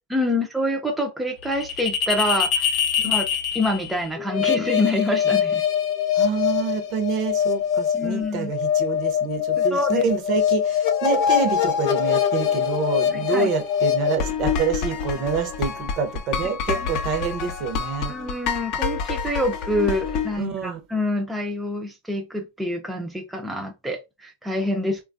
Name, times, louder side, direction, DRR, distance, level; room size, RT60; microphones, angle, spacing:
voice 1, 0.1-2.7 3.0-3.3 3.5-5.6 7.9-8.5 9.6-10.1 13.1-13.5 18.1-25.0, left 1 dB, 5° right, 0.5 m, -26 dB
sound 1, 1.4-20.4, left 8 dB, 50° left, 0.7 m, -24 dB
voice 2, 6.2-18.2 20.4-20.8, right 5 dB, 45° right, 0.7 m, -27 dB
3.1 x 2.3 x 2.5 m
hypercardioid pair, 115°, 0 cm